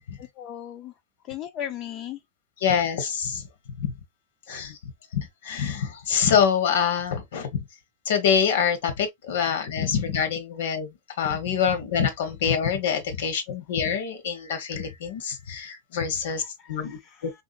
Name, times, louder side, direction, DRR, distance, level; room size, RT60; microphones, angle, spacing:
voice 1, 0.2-0.9 1.3-2.2 16.4-17.2, left 11 dB, 35° left, 0.4 m, -37 dB
voice 2, 2.6-3.5 3.8-3.9 4.5-4.8 5.1-7.6 8.1-16.4 16.7-17.3, left 7 dB, 80° left, 1.0 m, -25 dB
3.5 x 2.7 x 2.3 m
supercardioid pair, 150°, 0 cm